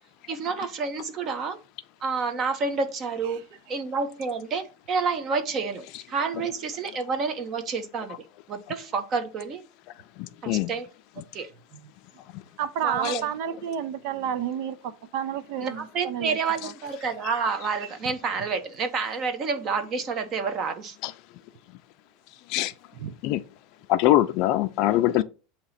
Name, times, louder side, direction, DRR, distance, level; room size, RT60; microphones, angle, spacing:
voice 1, 0.3-1.6 2.0-3.4 3.7-9.6 10.4-10.9 11.3-11.5 12.8-13.2 15.6-21.0, right 5 dB, 30° right, 1.0 m, -29 dB
voice 2, 10.2-10.7 12.3-12.4 13.0-13.2 21.0-21.1 22.5-22.7 23.2-23.4 23.9-25.2, left 15 dB, 45° left, 0.5 m, -23 dB
voice 3, 12.6-16.4 22.9-23.2, right 9 dB, 55° right, 0.6 m, -30 dB
8.1 x 2.9 x 5.7 m
supercardioid pair, 155°, 0 cm